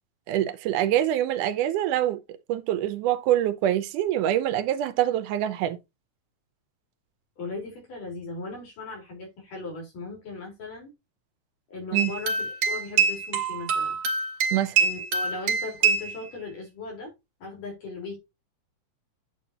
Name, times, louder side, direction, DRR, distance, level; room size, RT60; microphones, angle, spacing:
voice 1, 0.3-2.2 2.5-5.8 11.9-12.1 14.5-14.7, right 12 dB, 80° right, 2.2 m, -25 dB
voice 2, 7.4-10.9 11.7-14.0 14.8-17.1 17.4-18.2, left 3 dB, 85° left, 5.8 m, -38 dB
sound 1, 12.0-16.2, right 5 dB, 55° right, 2.6 m, -25 dB
9.8 x 7.2 x 2.8 m
omnidirectional pair, 3.6 m